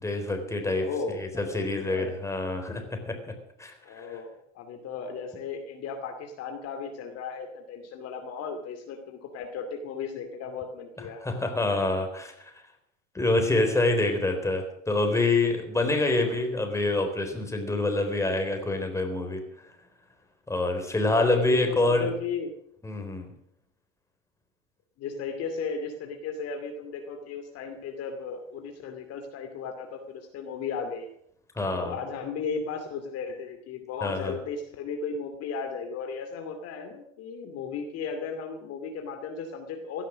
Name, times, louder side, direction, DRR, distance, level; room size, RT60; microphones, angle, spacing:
voice 1, 0.0-0.9 1.1-2.8 3.1-3.2 3.6-4.1 11.2-12.3 13.1-19.4 20.5-22.1 22.8-23.3 31.6-31.9 34.0-34.3, left 2 dB, 10° left, 4 dB, 4.0 m, -26 dB
voice 2, 0.7-2.1 3.8-11.2 16.0-16.4 21.0-22.5 25.0-31.1 31.7-40.1, left 5 dB, 40° left, 4 dB, 2.5 m, -36 dB
17.0 x 12.0 x 6.4 m, 0.73 s
hypercardioid pair, 95°, 38 cm